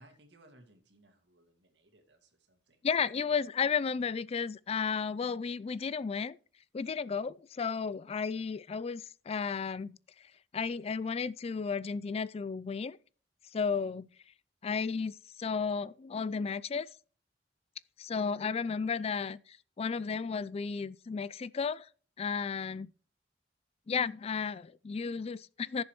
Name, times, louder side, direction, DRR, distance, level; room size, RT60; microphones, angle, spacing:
voice 1, 0.0-2.9, right 1 dB, 75° right, 2.4 m, -61 dB
voice 2, 2.8-6.4 6.7-10.0 10.5-13.0 13.5-14.1 14.6-16.9 18.0-21.9 22.2-22.9 23.9-25.8, left 5 dB, 35° left, 0.4 m, -33 dB
16.0 x 7.0 x 3.0 m
head